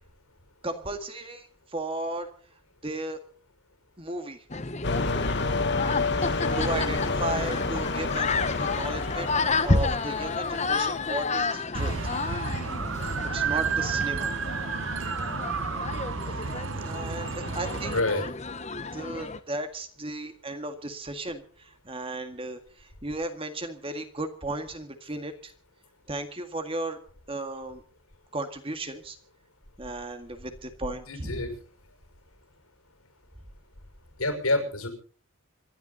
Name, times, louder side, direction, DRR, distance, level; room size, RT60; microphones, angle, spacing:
voice 1, 0.6-2.3 2.8-3.2 4.0-4.4 6.2-8.3 8.6-9.3 9.6-11.9 13.3-14.3 16.3-16.4 16.8-18.0 18.9-25.5 26.1-27.0 27.3-27.8 28.3-29.2 29.8-31.4, right 2 dB, 25° right, 7 dB, 1.9 m, -35 dB
sound 1, 4.5-19.4, left 3 dB, 30° left, 1.1 m, -31 dB
sound 2, 4.8-11.1, left 3 dB, 50° left, 1.5 m, -29 dB
sound 3, 11.7-18.0, right 5 dB, 60° right, 1.0 m, -31 dB
voice 2, 17.9-18.3 31.1-31.5 34.2-34.9, left 2 dB, 80° left, 6 dB, 5.8 m, -27 dB
26.0 x 12.0 x 4.0 m, 0.42 s
head